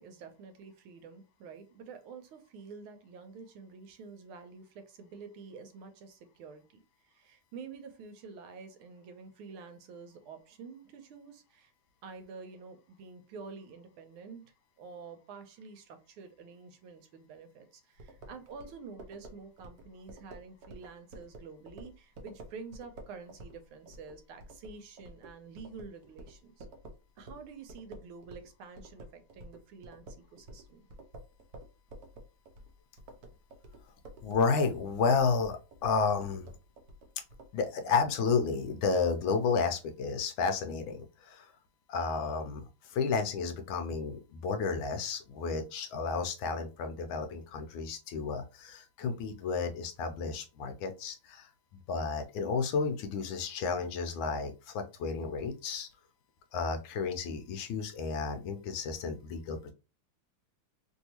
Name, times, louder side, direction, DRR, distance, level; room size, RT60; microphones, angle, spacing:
voice 1, 0.0-6.8 7.0-11.7 12.0-26.7 27.2-30.9, right 5 dB, 85° right, 1.5 m, -48 dB
sound 1, 18.0-28.5 28.8-37.5, right 1 dB, 65° right, 0.9 m, -50 dB
voice 2, 34.2-36.5 37.5-41.5 41.9-51.5 51.9-55.9 56.5-59.7, left 5 dB, 75° left, 1.3 m, -32 dB
3.4 x 2.7 x 2.8 m
omnidirectional pair, 2.3 m